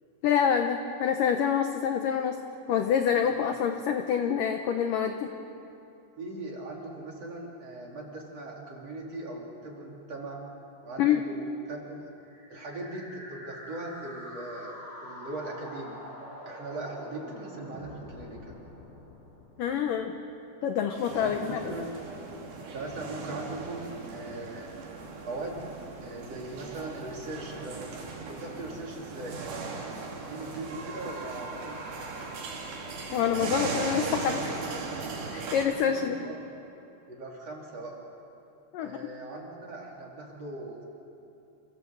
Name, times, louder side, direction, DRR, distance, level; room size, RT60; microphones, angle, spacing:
voice 1, 0.2-2.4 2.7-5.3 11.0-11.2 19.6-20.1 20.6-21.7 33.1-34.7 35.3-36.2 38.7-39.1, left 8 dB, 90° left, 5 dB, 1.9 m, -27 dB
voice 2, 6.2-10.4 10.8-12.0 12.5-14.8 15.0-16.0 16.5-18.6 21.1-21.9 22.7-24.7 25.2-25.6 26.0-27.8 28.3-29.4 30.3-31.8 35.9-36.4 37.1-38.0 38.8-40.9, right 2 dB, 40° right, -2 dB, 3.9 m, -39 dB
sound 1, 12.2-20.1, equal, 25° left, 7.9 m, -45 dB
sound 2, 20.9-35.7, right 4 dB, 70° right, 4.7 m, -38 dB
28.5 x 15.5 x 8.0 m, 2.8 s
omnidirectional pair, 5.1 m